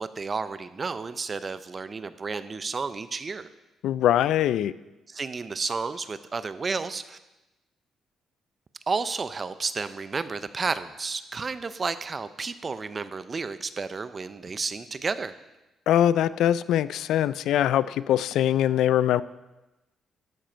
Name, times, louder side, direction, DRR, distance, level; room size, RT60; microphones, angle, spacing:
voice 1, 0.0-3.5 5.1-7.2 8.9-15.3, right 4 dB, 35° right, 13 dB, 0.6 m, -32 dB
voice 2, 3.8-4.7 15.9-19.2, left 11 dB, 80° left, 17 dB, 0.3 m, -22 dB
12.0 x 7.6 x 4.5 m, 1.0 s
cardioid pair, 90°, 0 cm